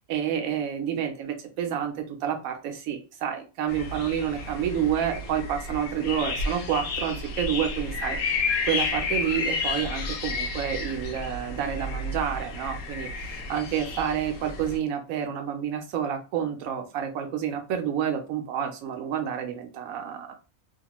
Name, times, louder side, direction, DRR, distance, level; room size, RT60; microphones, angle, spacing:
voice 1, 0.0-8.4 8.7-20.4, right 8 dB, 75° right, 5 dB, 1.0 m, -29 dB
sound 1, 3.7-14.8, left 3 dB, 80° left, 1.1 m, -31 dB
2.9 x 2.1 x 2.9 m, 0.33 s
omnidirectional pair, 1.5 m